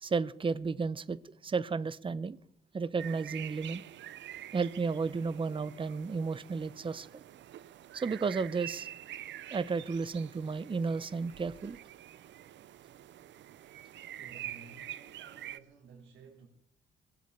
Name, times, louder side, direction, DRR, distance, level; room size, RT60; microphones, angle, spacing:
voice 1, 0.0-2.4 2.7-3.8 4.5-7.1 7.9-8.9 9.5-11.8, right 4 dB, 25° right, 0.8 m, -33 dB
sound 1, 3.0-15.6, right 12 dB, 65° right, 0.7 m, -47 dB
voice 2, 14.1-16.5, right 4 dB, 90° right, 3.5 m, -55 dB
20.5 x 7.4 x 8.8 m
cardioid pair, 90°, 20 cm